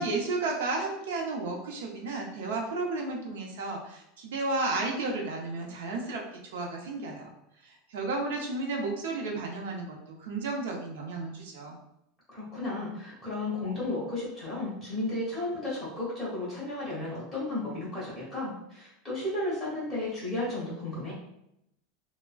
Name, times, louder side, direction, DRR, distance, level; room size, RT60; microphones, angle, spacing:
voice 1, 0.0-7.3 7.6-11.8, right 3 dB, 85° right, 1 dB, 0.6 m, -33 dB
voice 2, 12.3-21.1, left 2 dB, 10° left, -8 dB, 1.1 m, -33 dB
3.4 x 2.0 x 2.3 m, 0.80 s
supercardioid pair, 175°, 0 cm